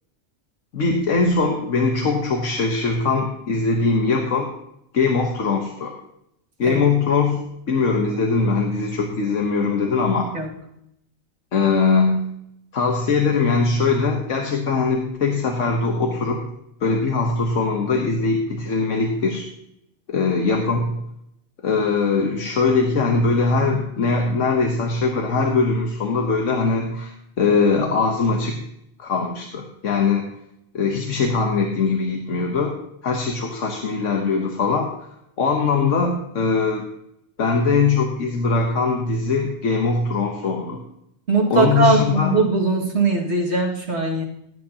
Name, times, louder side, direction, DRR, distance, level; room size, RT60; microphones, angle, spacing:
voice 1, 0.7-4.5 4.9-5.9 6.6-10.3 11.5-12.2 12.7-16.5 16.8-19.4 20.1-21.0 21.6-28.6 29.0-30.3 30.7-32.7 33.0-34.9 35.4-36.9 37.4-40.8 41.5-42.4, left 4 dB, 85° left, 2 dB, 1.5 m, -21 dB
voice 2, 41.3-44.2, right 3 dB, 60° right, -2 dB, 2.4 m, -20 dB
17.0 x 9.3 x 2.9 m, 0.80 s
omnidirectional pair, 1.3 m